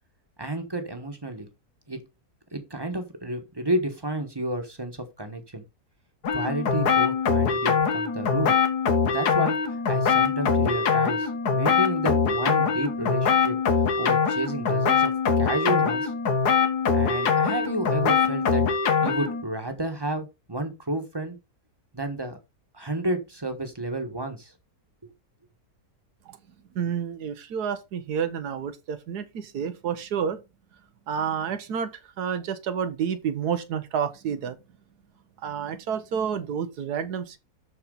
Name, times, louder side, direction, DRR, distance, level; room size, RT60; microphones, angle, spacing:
voice 1, 0.4-1.5 1.9-2.0 2.5-5.6 6.3-8.6 9.0-13.6 14.0-16.1 16.9-18.7 19.0-21.4 21.9-22.4 22.7-24.5 25.0-25.1, right 1 dB, 15° right, 1.2 m, -31 dB
sound 1, 6.2-19.4, left 6 dB, 85° left, 1.8 m, -23 dB
voice 2, 26.7-30.4 31.1-31.9 32.2-34.6 35.4-37.4, right 7 dB, 85° right, 1.5 m, -29 dB
12.5 x 4.3 x 3.8 m
omnidirectional pair, 1.7 m